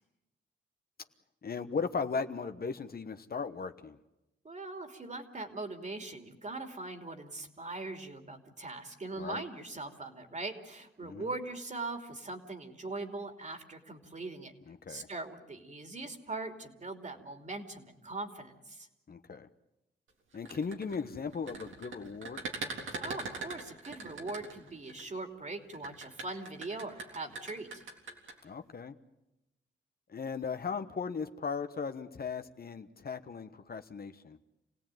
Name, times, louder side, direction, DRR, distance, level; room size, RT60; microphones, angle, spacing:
voice 1, 1.4-4.0 9.2-9.4 11.0-11.3 14.7-15.1 19.1-19.5 20.3-22.4 28.4-28.9 30.1-34.4, left 5 dB, 50° left, 9 dB, 1.2 m, -37 dB
voice 2, 4.4-14.5 14.9-18.9 23.0-27.8, right 2 dB, 35° right, 6 dB, 3.0 m, -41 dB
sound 1, 20.3-25.0 25.7-28.3, right 4 dB, 85° right, 3.7 m, -41 dB
27.5 x 17.5 x 9.2 m, 0.93 s
cardioid pair, 80°, 20 cm